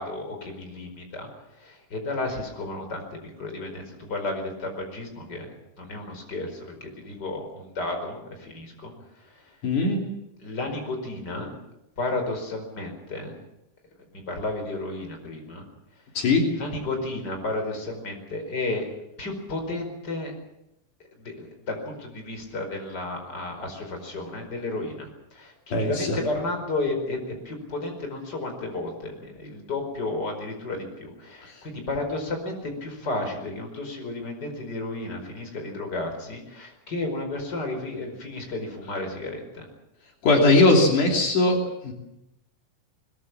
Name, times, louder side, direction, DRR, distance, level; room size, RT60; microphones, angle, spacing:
voice 1, 0.0-9.6 10.4-11.5 12.0-13.4 14.1-15.6 16.5-18.9 19.2-20.3 21.2-27.2 27.4-39.7, left 2 dB, 30° left, 4 dB, 5.4 m, -33 dB
voice 2, 9.6-10.0 16.2-16.4 25.7-26.2 40.2-41.9, left 2 dB, 75° left, 1 dB, 4.5 m, -20 dB
22.0 x 21.5 x 7.3 m, 0.86 s
omnidirectional pair, 3.6 m